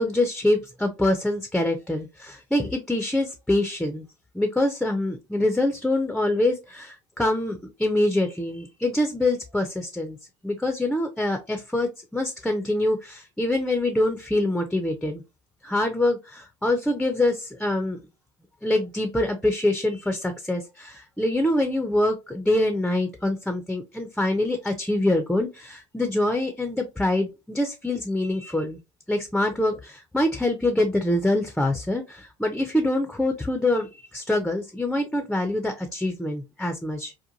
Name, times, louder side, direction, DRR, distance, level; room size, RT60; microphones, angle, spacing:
voice 1, 0.0-4.1 4.3-10.2 10.4-15.2 15.6-18.0 18.6-28.8 29.1-37.1, left 1 dB, 5° left, 6 dB, 0.4 m, -25 dB
2.8 x 2.2 x 2.5 m, 0.26 s
hypercardioid pair, 75°, 16 cm